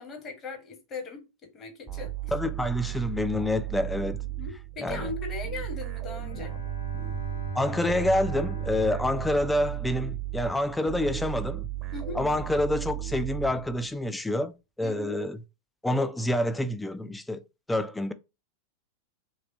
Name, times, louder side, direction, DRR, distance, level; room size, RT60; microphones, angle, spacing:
voice 1, 0.0-2.3 4.3-6.5 11.9-12.2 14.8-15.2, left 4 dB, 25° left, 1.1 m, -39 dB
sound 1, 1.9-14.1, right 14 dB, 25° right, 0.7 m, -35 dB
voice 2, 2.3-4.2 4.8-5.1 7.5-11.6 12.2-15.4 15.8-17.4 17.7-18.1, left 1 dB, 5° left, 0.3 m, -27 dB
Bowed string instrument, 6.1-10.4, right 3 dB, 80° left, 1.1 m, -38 dB
3.2 x 3.1 x 2.7 m
figure-of-eight pair, 90°, 0 cm